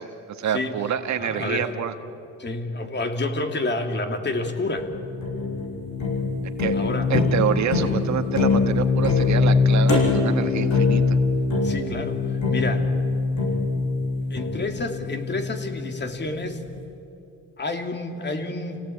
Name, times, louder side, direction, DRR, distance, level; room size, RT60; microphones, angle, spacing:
voice 1, 0.0-1.9 6.6-6.8 7.1-11.2, right 9 dB, 65° right, 8 dB, 1.7 m, -27 dB
voice 2, 1.2-1.7 2.4-4.9 6.7-7.1 11.6-12.8 14.3-16.7 17.6-18.8, left 2 dB, 35° left, 5 dB, 2.8 m, -29 dB
sound 1, 4.8-16.0, left 4 dB, 70° left, 7.1 m, -23 dB
29.5 x 18.0 x 8.6 m, 2.8 s
cardioid pair, 90°, 30 cm